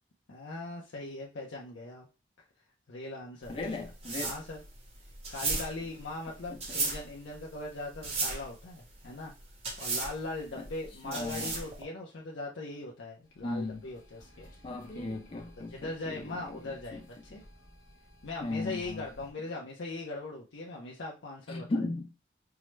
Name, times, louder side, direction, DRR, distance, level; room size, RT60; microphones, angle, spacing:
voice 1, 0.3-2.1 2.9-3.7 4.2-4.6 5.3-9.3 9.8-14.5 15.6-17.4 18.2-21.8, left 2 dB, 80° left, 0.6 m, -40 dB
sound 1, 3.4-11.8, right 3 dB, 35° right, 0.8 m, -36 dB
voice 2, 3.5-4.3 10.6-10.7 11.0-11.5 13.4-13.8 14.6-16.3 16.9-17.0 18.4-19.0 21.5-22.1, left 2 dB, 30° left, 0.3 m, -36 dB
sound 2, 13.2-19.3, equal, 50° left, 1.0 m, -53 dB
4.6 x 2.1 x 3.1 m
head